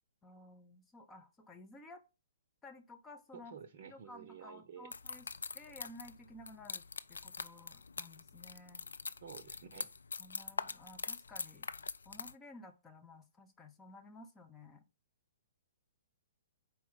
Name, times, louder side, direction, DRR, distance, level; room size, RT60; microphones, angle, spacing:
voice 1, 0.2-2.0 2.6-3.6 3.8-5.3 5.5-6.8 7.1-8.8 10.2-11.7 12.1-14.8, left 2 dB, 15° left, 0.7 m, -54 dB
voice 2, 3.3-4.9 9.2-9.9, right 8 dB, 45° right, 0.7 m, -51 dB
sound 1, 4.9-12.3, left 4 dB, 65° left, 0.3 m, -43 dB
4.6 x 4.4 x 5.4 m
figure-of-eight pair, 120°, 0 cm